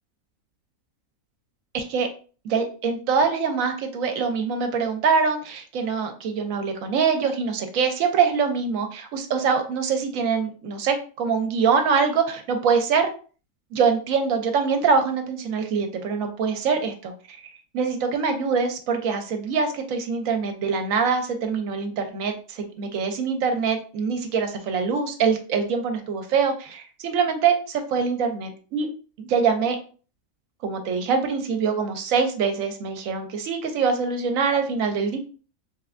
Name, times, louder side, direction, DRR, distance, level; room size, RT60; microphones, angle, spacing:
voice 1, 1.7-2.1 2.4-13.1 13.7-17.4 17.7-28.9 29.2-29.8 30.6-35.2, right 5 dB, 75° right, 6 dB, 1.0 m, -24 dB
3.3 x 3.1 x 2.4 m, 0.39 s
omnidirectional pair, 1.5 m